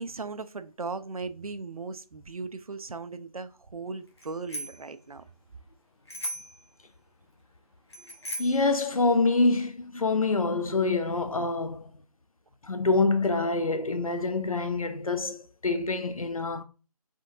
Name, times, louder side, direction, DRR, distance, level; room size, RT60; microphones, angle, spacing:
voice 1, 0.0-5.2, right 4 dB, 65° right, 0.5 m, -37 dB
Bicycle bell, 4.2-4.9 6.1-6.6 7.9-8.7, equal, 45° left, 1.0 m, -37 dB
voice 2, 8.4-11.9 12.6-16.6, left 3 dB, 60° left, 0.6 m, -26 dB
3.8 x 3.5 x 2.5 m
figure-of-eight pair, 160°, 20 cm